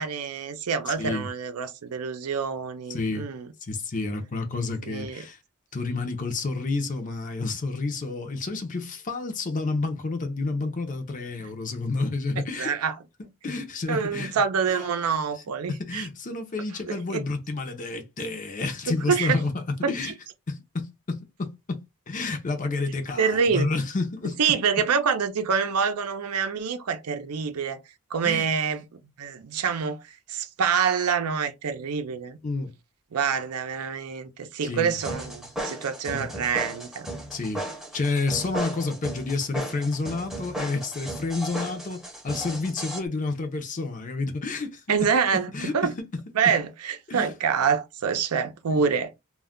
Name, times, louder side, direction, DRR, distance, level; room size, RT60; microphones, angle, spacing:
voice 1, 0.0-3.5 4.9-5.2 12.4-12.9 13.9-16.1 16.9-17.2 19.1-19.4 19.8-19.9 23.2-23.7 24.4-27.8 28.1-28.8 29.2-30.0 30.3-32.4 33.1-37.1 44.9-45.9 46.3-49.1, right 6 dB, 85° right, 0.5 m, -26 dB
voice 2, 0.9-1.3 2.9-3.3 3.6-5.4 5.7-12.7 13.4-14.4 14.7-14.9 15.7-20.1 20.5-24.4 28.2-28.5 32.4-32.7 34.6-35.0 36.1-36.3 37.3-37.7 37.9-44.8 45.3-46.1 46.4-46.6 47.1-47.4 48.7-48.8, left 3 dB, 35° left, 0.5 m, -30 dB
sound 1, 35.0-43.0, right 1 dB, ahead, 0.6 m, -35 dB
2.3 x 2.1 x 3.6 m
head